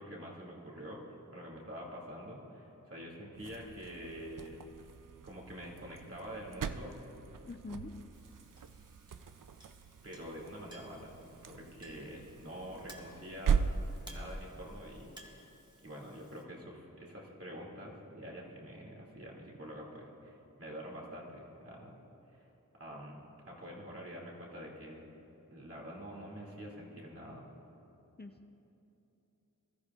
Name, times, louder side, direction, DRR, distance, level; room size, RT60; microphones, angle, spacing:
voice 1, 0.0-4.6 5.2-7.0 10.0-11.2 11.5-13.7 14.1-15.5 15.8-21.9 22.3-22.4 22.8-23.2 23.5-25.1 25.5-27.5, equal, 45° right, -3 dB, 2.3 m, -46 dB
sound 1, 3.3-14.5, right 6 dB, 75° right, 0.5 m, -39 dB
voice 2, 7.4-7.9 28.2-28.6, left 2 dB, 30° left, 4 dB, 0.6 m, -45 dB
Chink clink, 8.1-16.4, right 1 dB, 15° right, 1.6 m, -58 dB
21.0 x 13.5 x 2.4 m, 3.0 s
wide cardioid pair, 60°, 33 cm